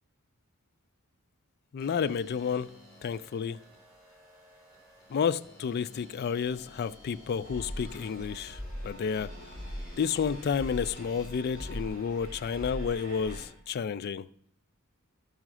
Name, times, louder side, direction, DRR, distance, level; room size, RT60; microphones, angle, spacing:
voice 1, 1.7-2.7 3.0-3.6 5.1-9.3 10.0-14.3, left 6 dB, 50° left, 0.3 m, -31 dB
sound 1, 1.8-13.4, equal, 5° right, 3.6 m, -54 dB
sound 2, 7.4-13.5, equal, 45° right, 4.1 m, -41 dB
12.0 x 5.6 x 6.1 m
head